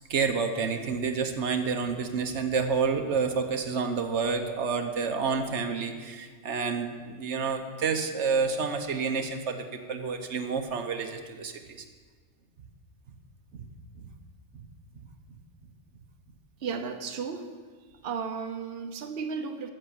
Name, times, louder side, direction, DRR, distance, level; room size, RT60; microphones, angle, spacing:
voice 1, 0.1-11.8 13.5-13.6 14.0-14.1 14.5-14.6, right 5 dB, 80° right, 6 dB, 1.2 m, -29 dB
voice 2, 16.6-17.5 18.0-19.7, right 5 dB, 60° right, 5 dB, 1.1 m, -34 dB
14.5 x 6.6 x 7.0 m, 1.5 s
omnidirectional pair, 1.2 m